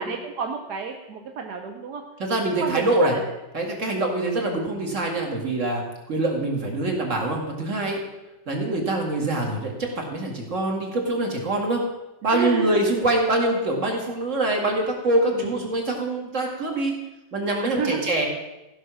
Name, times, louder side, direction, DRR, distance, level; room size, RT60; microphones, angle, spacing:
voice 1, 0.0-2.0 2.6-3.3 3.8-4.0 12.3-12.8 15.3-15.6 17.6-18.0, right 6 dB, 70° right, 4 dB, 1.4 m, -30 dB
voice 2, 2.2-3.2 3.5-8.0 8.5-11.8 12.2-17.0 17.3-18.3, right 2 dB, 45° right, 1 dB, 2.4 m, -24 dB
15.0 x 6.3 x 6.3 m, 1.0 s
omnidirectional pair, 1.9 m